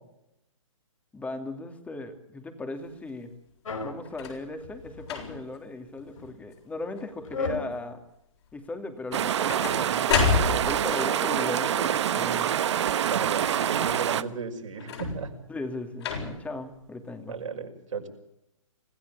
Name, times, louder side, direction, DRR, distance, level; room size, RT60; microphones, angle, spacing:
voice 1, 1.1-3.3 3.8-8.0 8.5-12.5 15.5-17.4, left 2 dB, 10° left, 7 dB, 2.7 m, -37 dB
sound 1, 3.6-4.0 4.6-5.3 6.0-6.3 7.2-7.7, left 3 dB, 75° left, 5.7 m, -34 dB
sound 2, 4.1-4.5 5.0-5.6 6.2-6.5 6.8-7.4 9.1-10.9 14.8-15.4 16.0-16.6 17.4-17.5, left 7 dB, 55° left, 7.5 m, -30 dB
sound 3, 9.1-14.2, right 10 dB, 60° right, 1.3 m, -26 dB
voice 2, 13.0-15.3 17.3-18.1, right 5 dB, 75° right, 2 dB, 6.0 m, -35 dB
26.0 x 15.5 x 8.6 m, 0.82 s
hypercardioid pair, 140°, 17 cm